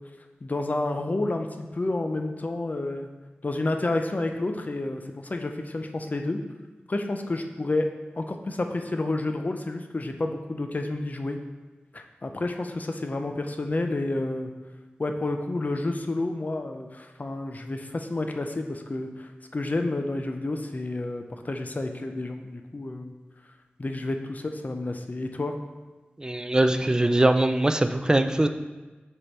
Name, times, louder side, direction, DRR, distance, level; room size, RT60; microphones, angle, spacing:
voice 1, 0.4-3.1 3.4-6.4 6.9-7.9 8.1-11.4 11.9-14.5 15.0-23.1 23.8-25.6, left 2 dB, 45° left, 5 dB, 0.5 m, -30 dB
voice 2, 26.2-28.5, right 1 dB, 20° right, 8 dB, 0.4 m, -22 dB
5.0 x 4.4 x 4.2 m, 1.2 s
wide cardioid pair, 70°, 4 cm